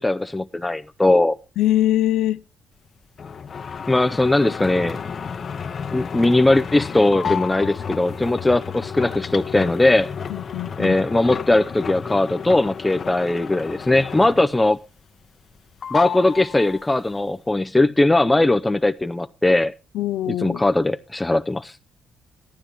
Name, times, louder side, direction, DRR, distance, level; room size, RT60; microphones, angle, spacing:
voice 1, 0.0-1.4 3.9-5.0 5.9-10.1 10.8-14.8 15.9-19.7 20.3-21.8, left 2 dB, 15° left, 0.6 m, -19 dB
voice 2, 1.6-2.4 10.3-11.0 19.9-20.6, left 13 dB, 85° left, 0.5 m, -22 dB
sound 1, 3.2-14.7 15.0-15.6 15.8-17.1, left 7 dB, 45° left, 0.9 m, -31 dB
14.0 x 12.0 x 3.0 m
cardioid pair, 90°, 0 cm